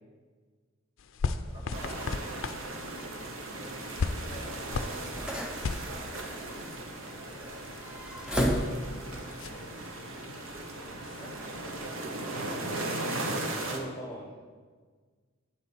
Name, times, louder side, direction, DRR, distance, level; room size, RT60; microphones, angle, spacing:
sound 1, 1.0-11.9, left 4 dB, 70° left, 0.4 m, -39 dB
voice 1, 1.4-5.2 5.8-7.8 8.2-12.6, equal, 30° right, -3 dB, 2.0 m, -51 dB
sound 2, 1.5-9.2, equal, 5° right, 0.9 m, -37 dB
sound 3, 1.7-13.8, right 2 dB, 75° right, 1.0 m, -38 dB
voice 2, 13.6-14.3, right 1 dB, 20° left, -4 dB, 1.3 m, -40 dB
8.5 x 7.2 x 4.5 m, 1.5 s
head